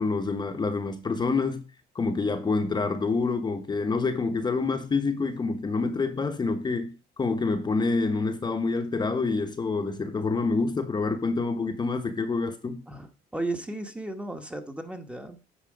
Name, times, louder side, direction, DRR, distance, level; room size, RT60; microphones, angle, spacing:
voice 1, 0.0-1.6 1.9-12.8, left 4 dB, 25° left, 1.0 m, -27 dB
voice 2, 12.9-15.4, right 2 dB, 5° right, 1.1 m, -35 dB
9.3 x 4.5 x 5.1 m
cardioid pair, 110°, 17 cm